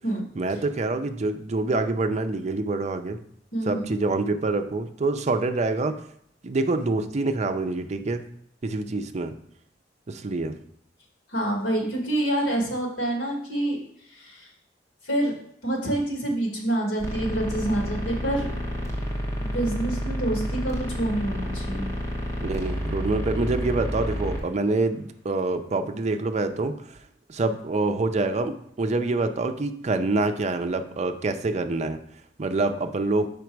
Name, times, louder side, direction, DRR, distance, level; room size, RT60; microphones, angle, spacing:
voice 1, 0.4-3.2 3.7-6.0 6.4-8.2 8.6-9.3 10.1-10.5 22.4-27.0 27.3-32.0 32.4-33.3, right 2 dB, 40° right, 8 dB, 0.5 m, -26 dB
voice 2, 3.5-3.8 11.3-13.8 14.1-14.5 15.0-15.4 15.6-18.5 19.4-21.8, right 1 dB, 85° left, -1 dB, 1.9 m, -27 dB
sound 1, 17.0-24.4, equal, 15° left, 1.3 m, -30 dB
6.1 x 5.1 x 4.6 m, 0.68 s
head